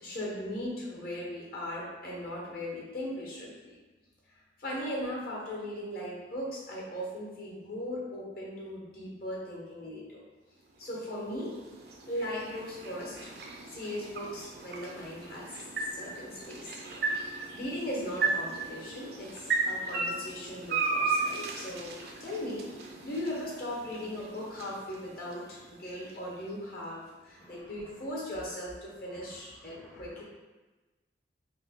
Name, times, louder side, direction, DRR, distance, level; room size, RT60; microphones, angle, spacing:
voice 1, 0.0-3.8 4.6-10.2 10.8-11.5 12.1-13.3 13.7-15.5 15.9-17.3 17.5-21.9 22.2-30.2, left 1 dB, 55° left, -4 dB, 1.0 m, -38 dB
sound 1, 10.6-26.8, right 4 dB, 60° right, 0.4 m, -36 dB
voice 2, 29.7-30.2, equal, ahead, -8 dB, 0.4 m, -54 dB
2.8 x 2.7 x 3.6 m, 1.2 s
head